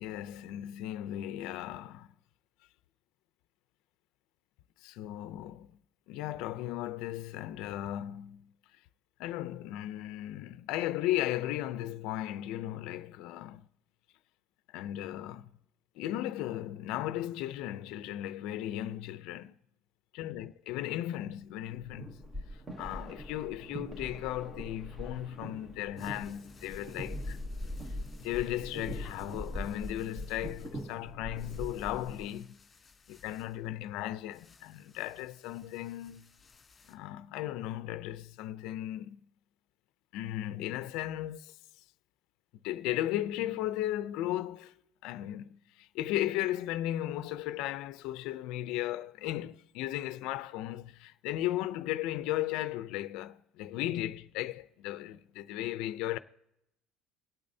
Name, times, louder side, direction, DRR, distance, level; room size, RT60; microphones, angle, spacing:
voice 1, 0.0-2.1 4.8-5.7 6.1-8.5 9.2-13.7 14.7-15.5 16.0-19.5 20.1-22.2 22.8-27.4 28.2-32.6 33.1-36.3 36.9-39.2 40.1-41.6 42.6-56.2, left 13 dB, 65° left, 0.4 m, -36 dB
sound 1, 21.7-32.4, equal, 15° right, 0.9 m, -42 dB
sound 2, 25.9-37.0, left 4 dB, 20° left, 2.1 m, -61 dB
25.0 x 8.6 x 2.7 m
cardioid pair, 165°, 0 cm